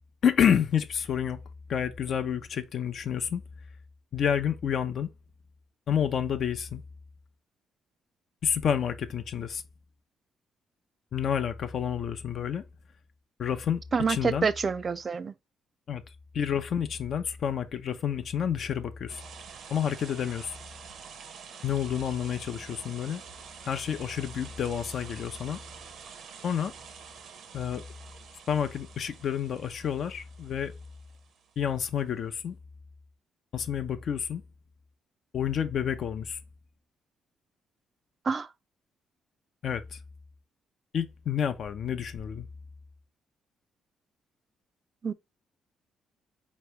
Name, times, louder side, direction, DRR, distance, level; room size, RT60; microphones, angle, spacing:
voice 1, 0.2-1.4 1.7-3.4 4.1-5.1 5.9-6.8 8.4-9.6 11.1-12.6 13.4-13.8 14.1-14.5 15.9-16.0 16.3-19.2 19.7-20.6 21.6-23.2 23.6-25.6 26.4-26.7 27.5-27.8 28.5-30.7 31.6-32.6 33.5-34.4 35.3-36.4 39.6-40.0 40.9-42.5, left 8 dB, 60° left, 0.6 m, -29 dB
voice 2, 13.9-15.3 38.2-38.5 45.0-45.1, right 5 dB, 40° right, 0.4 m, -27 dB
sound 1, 19.1-31.6, right 6 dB, 70° right, 0.8 m, -47 dB
4.4 x 3.1 x 3.2 m
cardioid pair, 90°, 0 cm